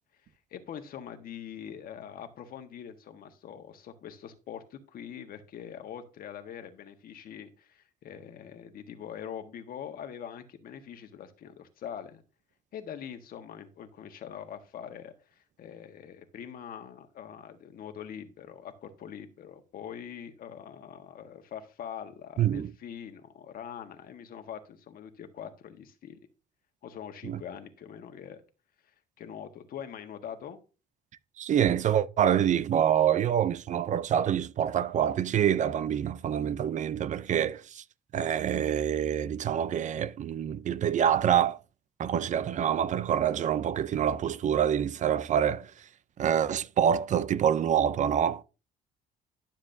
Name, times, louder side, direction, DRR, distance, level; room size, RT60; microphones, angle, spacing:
voice 1, 0.5-12.2 12.7-26.2 26.8-28.4 29.2-30.6, left 8 dB, 60° left, 1.4 m, -43 dB
voice 2, 22.4-22.7 27.2-27.4 31.4-37.8 38.1-41.6 42.0-45.7 46.2-48.4, right 9 dB, 45° right, 0.5 m, -26 dB
12.0 x 7.2 x 2.7 m
cardioid pair, 110°, 17 cm